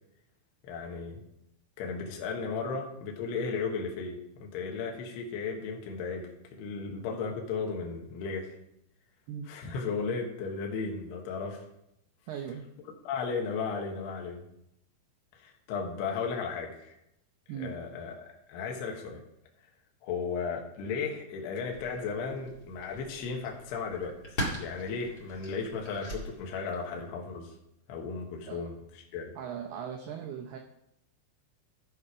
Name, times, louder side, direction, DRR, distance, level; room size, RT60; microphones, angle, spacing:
voice 1, 0.6-1.2 1.8-8.5 9.5-11.6 13.0-14.4 15.3-17.0 17.6-19.2 20.0-24.2 24.6-27.5 27.9-29.3, left 5 dB, 70° left, 1 dB, 3.1 m, -35 dB
voice 2, 12.3-12.7 17.5-17.8 28.5-28.6 29.4-30.6, right 8 dB, 80° right, 2 dB, 2.3 m, -38 dB
sound 1, 21.7-27.0, equal, 50° left, 1.0 m, -41 dB
14.0 x 5.6 x 4.9 m, 0.81 s
omnidirectional pair, 5.6 m